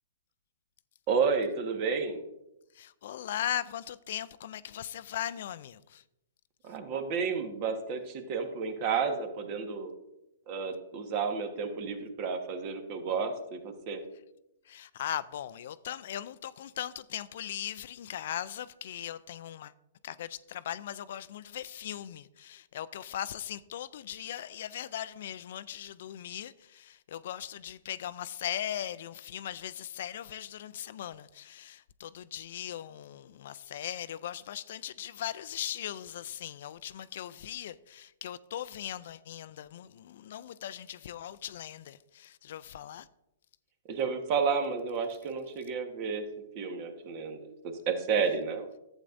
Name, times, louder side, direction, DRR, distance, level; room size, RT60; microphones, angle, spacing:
voice 1, 1.1-2.2 6.6-9.9 10.5-14.0 43.9-46.2 46.5-47.4 47.9-48.7, right 5 dB, 40° right, 1.4 m, -31 dB
voice 2, 2.7-6.0 14.7-19.7 20.0-43.1, left 11 dB, 60° left, 0.3 m, -39 dB
11.5 x 8.1 x 2.6 m
hypercardioid pair, 130°, 0 cm